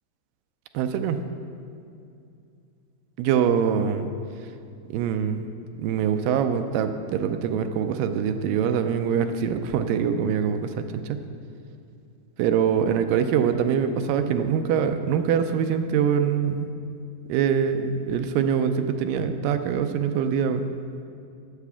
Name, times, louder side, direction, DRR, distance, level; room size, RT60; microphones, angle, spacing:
voice 1, 0.7-1.2 3.2-4.1 4.9-5.4 5.8-11.2 12.4-16.7 17.3-20.6, right 7 dB, 80° right, 8 dB, 2.2 m, -24 dB
8.4 x 8.2 x 7.0 m, 2.6 s
omnidirectional pair, 4.0 m